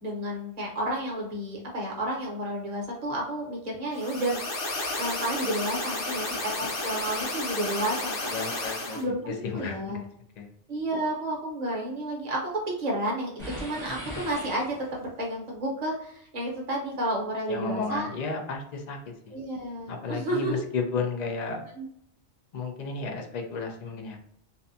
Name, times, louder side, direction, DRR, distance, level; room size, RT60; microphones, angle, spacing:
voice 1, 0.0-4.4 5.0-8.3 8.9-10.0 10.7-18.1 19.3-20.6 21.8-21.9, right 1 dB, 40° right, -2 dB, 0.8 m, -31 dB
sound 1, 3.9-9.0, left 2 dB, 85° left, 1.1 m, -32 dB
voice 2, 8.3-9.0 9.3-10.1 10.4-10.5 17.5-19.0 19.3-19.4 19.9-21.6 22.5-24.2, left 4 dB, 65° left, 2 dB, 0.4 m, -33 dB
sound 2, 13.4-15.2, left 1 dB, 5° left, 0.9 m, -39 dB
2.6 x 2.2 x 2.6 m, 0.71 s
omnidirectional pair, 1.2 m